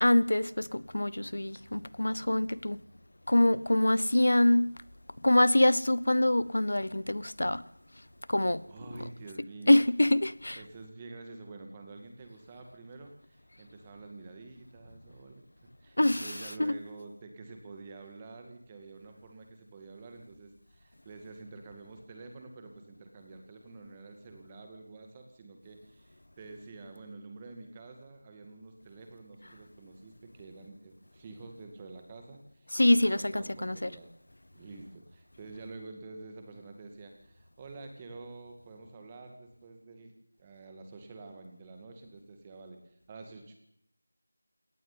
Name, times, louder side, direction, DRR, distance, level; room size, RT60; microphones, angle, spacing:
voice 1, 0.0-2.8 3.3-4.7 5.2-7.6 8.3-8.6 9.7-10.6 16.0-16.2 16.6-16.8 32.7-33.9, left 1 dB, 90° left, 1.0 m, -25 dB
voice 2, 8.7-9.7 10.6-15.4 15.8-34.1 34.5-40.1 40.4-43.5, right 3 dB, 15° right, 2.1 m, -48 dB
20.5 x 18.5 x 9.7 m
figure-of-eight pair, 175°, 0 cm